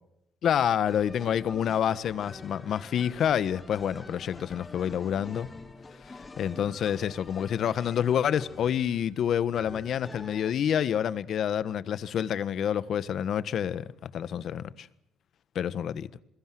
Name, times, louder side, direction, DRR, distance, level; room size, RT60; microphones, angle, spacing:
voice 1, 0.4-5.5 6.1-14.9 15.5-16.1, left 9 dB, 60° left, 1.4 m, -28 dB
sound 1, 0.9-10.5, left 3 dB, 20° left, 2.8 m, -46 dB
28.0 x 22.0 x 7.7 m
cardioid pair, 90°, 0 cm